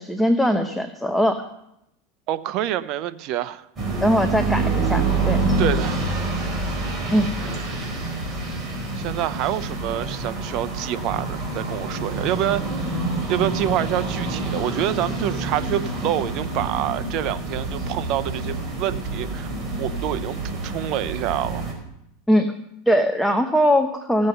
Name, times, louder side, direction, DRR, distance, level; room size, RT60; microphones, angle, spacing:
voice 1, 0.0-1.4 4.0-5.6 7.1-7.3 22.3-22.5 22.9-24.3, equal, ahead, 5 dB, 0.9 m, -20 dB
voice 2, 2.3-3.7 5.6-6.0 7.1-7.9 8.9-12.6 13.3-19.5 19.8-21.7, right 12 dB, 50° right, 13 dB, 0.7 m, -27 dB
sound 1, 3.8-21.7, right 2 dB, 25° right, 4.4 m, -27 dB
15.5 x 7.6 x 6.7 m, 0.80 s
supercardioid pair, 120°, 0 cm